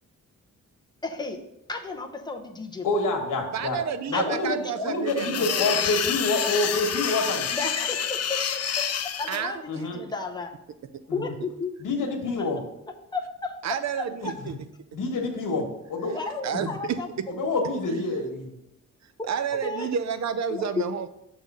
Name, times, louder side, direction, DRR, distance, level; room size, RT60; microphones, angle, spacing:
voice 1, 1.0-1.4 1.7-2.9 4.1-4.4 7.5-8.9 9.2-10.5 11.1-11.7 12.4-12.5 13.1-13.6 14.0-14.3 16.1-17.1 17.9-18.0 19.2-19.3 19.5-19.9 20.5-20.6, left 3 dB, 15° left, 2 dB, 0.7 m, -33 dB
voice 2, 2.8-3.8 4.1-7.5 9.7-10.0 11.1-11.3 11.8-12.6 14.9-15.6 15.9-16.1 16.5-16.7 17.3-18.4, left 2 dB, 80° left, 3 dB, 1.3 m, -27 dB
voice 3, 3.5-5.8 9.3-9.8 10.9-11.0 13.6-14.6 16.1-16.2 16.4-17.0 19.0-21.1, right 7 dB, 60° right, 11 dB, 0.5 m, -30 dB
sound 1, 5.1-9.4, left 8 dB, 55° left, 0.5 m, -28 dB
6.2 x 3.7 x 5.3 m, 0.83 s
wide cardioid pair, 155°, 31 cm